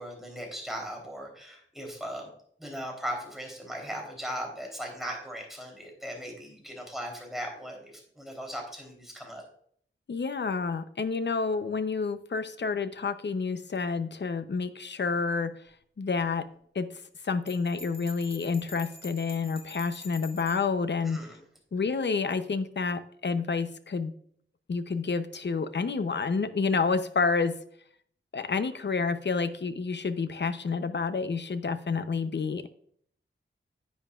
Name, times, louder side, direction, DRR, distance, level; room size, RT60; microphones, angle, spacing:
voice 1, 0.0-2.3 2.6-9.4 21.0-21.4, equal, ahead, 0 dB, 3.5 m, -38 dB
voice 2, 10.1-15.5 16.0-16.5 16.7-16.9 17.2-21.2 21.7-24.1 24.7-27.6 28.3-32.7, left 4 dB, 55° left, 11 dB, 0.7 m, -29 dB
Bell, 17.5-20.7, left 1 dB, 25° left, 2.4 m, -46 dB
10.5 x 8.8 x 2.4 m, 0.62 s
wide cardioid pair, 85°, 21 cm